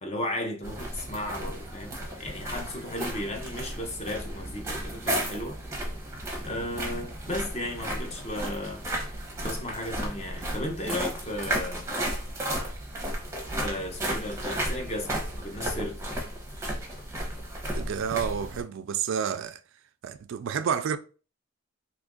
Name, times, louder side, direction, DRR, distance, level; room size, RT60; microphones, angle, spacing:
voice 1, 0.0-5.6 6.4-8.9 9.4-11.9 13.6-16.0, left 1 dB, 30° left, 0.6 m, -35 dB
sound 1, 0.6-18.6, right 1 dB, 15° right, 0.7 m, -34 dB
voice 2, 17.7-19.6 20.0-21.0, right 7 dB, 60° right, 0.3 m, -29 dB
2.9 x 2.5 x 3.6 m
head